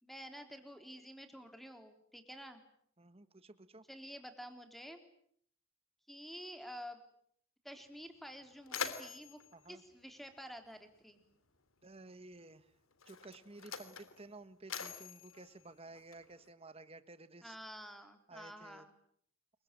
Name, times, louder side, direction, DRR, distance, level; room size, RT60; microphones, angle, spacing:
voice 1, 0.0-2.6 3.9-5.0 6.1-7.0 7.6-9.4 9.7-11.2 17.4-18.9, equal, ahead, 7 dB, 3.6 m, -50 dB
voice 2, 3.0-3.8 9.5-9.8 11.8-12.7 13.0-17.6 18.3-18.8, right 2 dB, 30° right, 12 dB, 1.5 m, -54 dB
Mechanisms, 7.7-7.8 8.2-10.9 11.9-12.1 12.9-16.5, left 6 dB, 90° left, 3.2 m, -45 dB
28.0 x 23.5 x 9.1 m, 0.67 s
head